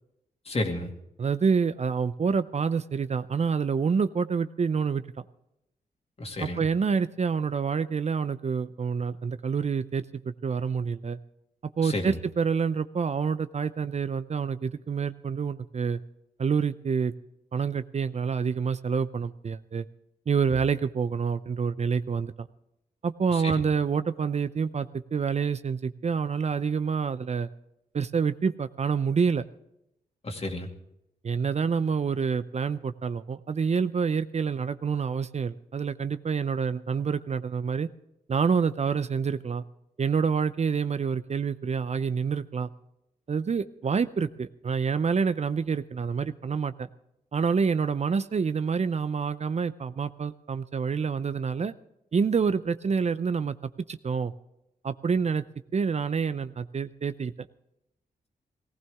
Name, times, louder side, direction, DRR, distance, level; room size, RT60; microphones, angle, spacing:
voice 1, 0.5-0.9 6.2-6.6 11.8-12.2 23.3-23.5 30.2-30.7, left 2 dB, 40° left, 3 dB, 2.5 m, -31 dB
voice 2, 1.2-5.0 6.4-11.2 11.8-16.0 16.4-17.1 17.5-19.9 20.3-22.5 23.0-27.5 27.9-29.5 31.2-37.9 38.3-39.6 40.0-42.7 43.3-46.9 47.3-51.7 52.1-53.5 53.9-54.3 54.8-55.4 55.7-57.3, right 6 dB, 45° right, 13 dB, 0.6 m, -27 dB
18.0 x 15.5 x 3.6 m, 0.84 s
cardioid pair, 65°, 16 cm